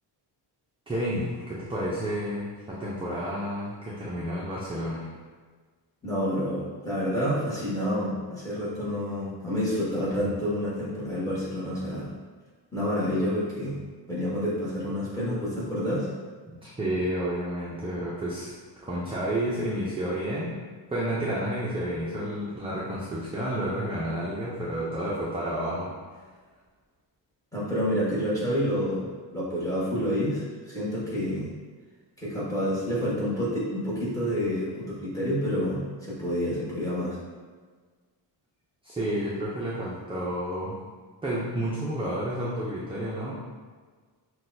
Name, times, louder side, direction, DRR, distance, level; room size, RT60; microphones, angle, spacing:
voice 1, 0.9-5.1 16.6-18.5 18.8-20.6 20.9-25.9 38.8-40.8 41.2-43.3, right 1 dB, 15° right, -7 dB, 0.4 m, -30 dB
voice 2, 6.0-12.1 12.7-13.8 14.1-16.1 27.5-29.0 29.3-31.5 32.2-37.2, equal, 5° left, -8 dB, 1.1 m, -28 dB
5.9 x 2.3 x 2.6 m, 1.5 s
wide cardioid pair, 165°, 46 cm